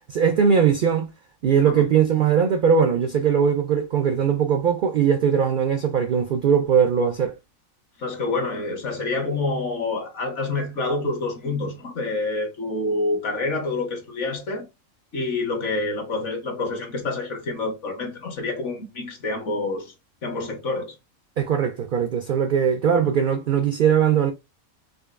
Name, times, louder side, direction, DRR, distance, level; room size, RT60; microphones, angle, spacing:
voice 1, 0.1-1.1 1.4-7.4 21.4-24.3, right 7 dB, 70° right, 0.4 m, -20 dB
voice 2, 8.0-14.7 15.1-19.9 20.2-21.0 22.9-23.1, left 3 dB, 60° left, 1.4 m, -27 dB
5.2 x 2.5 x 2.4 m
omnidirectional pair, 1.4 m